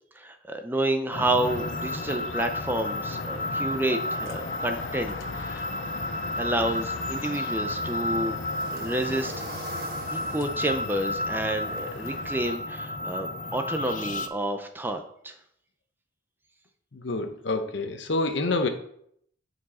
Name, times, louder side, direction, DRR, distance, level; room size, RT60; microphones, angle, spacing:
voice 1, 0.2-5.7 6.4-8.4 8.7-9.3 10.1-15.3, right 1 dB, 10° right, 6 dB, 0.5 m, -29 dB
sound 1, 1.1-14.3, left 2 dB, 40° left, 0.5 m, -32 dB
sound 2, 1.4-12.6, left 4 dB, 85° left, 0.6 m, -40 dB
sound 3, 7.1-12.2, right 2 dB, 50° right, 1.3 m, -44 dB
voice 2, 16.9-18.7, left 2 dB, 70° left, 6 dB, 0.9 m, -27 dB
8.7 x 4.6 x 4.2 m, 0.68 s
head